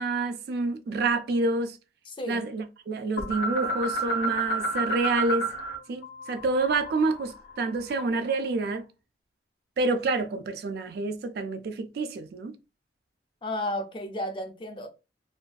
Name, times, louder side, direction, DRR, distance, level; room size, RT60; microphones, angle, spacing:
voice 1, 0.0-1.8 2.3-5.5 5.9-8.8 9.8-12.5, right 3 dB, 60° right, 0.3 m, -28 dB
voice 2, 2.1-2.4 13.4-14.9, left 1 dB, 30° left, 0.4 m, -33 dB
sound 1, 3.2-5.8 6.0-8.3, right 2 dB, 75° left, 0.6 m, -31 dB
2.5 x 2.3 x 2.2 m
head